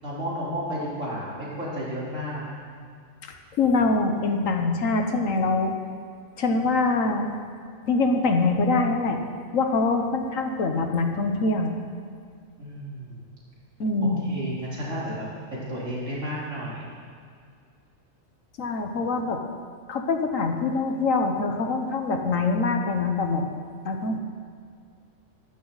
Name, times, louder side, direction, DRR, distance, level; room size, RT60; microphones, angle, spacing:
voice 1, 0.0-2.4 12.6-13.2 14.0-15.3 15.5-16.9, equal, 70° right, -7 dB, 4.4 m, -32 dB
voice 2, 3.6-5.7 6.4-7.3 7.9-9.2 9.5-11.7 13.8-14.2 18.6-19.4 19.9-23.4 23.8-24.2, left 3 dB, 75° left, 5 dB, 1.4 m, -24 dB
15.0 x 12.5 x 4.0 m, 2.2 s
omnidirectional pair, 1.4 m